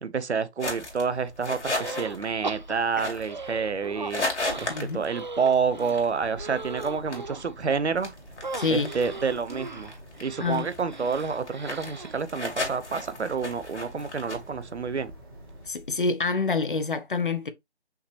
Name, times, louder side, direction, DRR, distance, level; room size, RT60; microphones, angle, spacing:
voice 1, 0.0-4.3 4.6-8.1 8.7-9.9 10.2-15.1, right 5 dB, 75° right, 0.7 m, -28 dB
sound 1, 0.6-15.9, left 2 dB, 80° left, 2.3 m, -37 dB
sound 2, 1.6-2.2 2.4-4.1 4.5-7.5 8.4-12.2, right 3 dB, 45° right, 0.4 m, -38 dB
voice 2, 4.7-5.0 8.6-8.9 10.4-10.7 15.7-17.5, left 4 dB, 50° left, 0.6 m, -27 dB
Boat Water vehicle, 6.6-15.7, right 2 dB, 20° right, 1.0 m, -52 dB
5.7 x 2.8 x 3.2 m
figure-of-eight pair, 160°, 34 cm